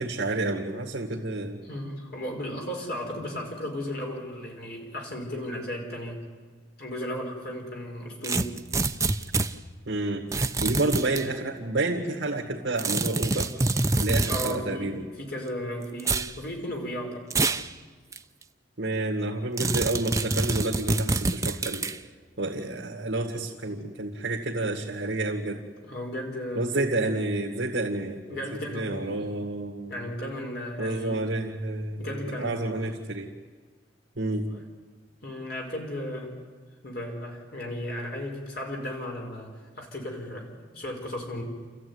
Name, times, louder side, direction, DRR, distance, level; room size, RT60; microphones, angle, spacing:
voice 1, 0.0-1.6 9.9-10.3 10.6-13.5 14.0-15.1 18.8-21.9 22.4-25.6 26.6-29.9 30.8-33.3 34.2-34.5, right 2 dB, 65° right, -2 dB, 2.0 m, -29 dB
voice 2, 1.6-6.2 6.8-8.5 14.3-17.3 25.8-26.6 28.3-29.3 29.9-31.2 32.0-32.9 34.5-34.6 35.2-36.3 36.8-41.4, equal, 55° left, 1 dB, 5.0 m, -35 dB
sound 1, 8.2-9.5 10.3-11.2 12.8-14.6 16.0-16.3 17.3-17.7 18.1-18.2 19.6-22.0, right 3 dB, 15° right, 0.6 m, -26 dB
28.5 x 14.5 x 9.6 m, 1.5 s
head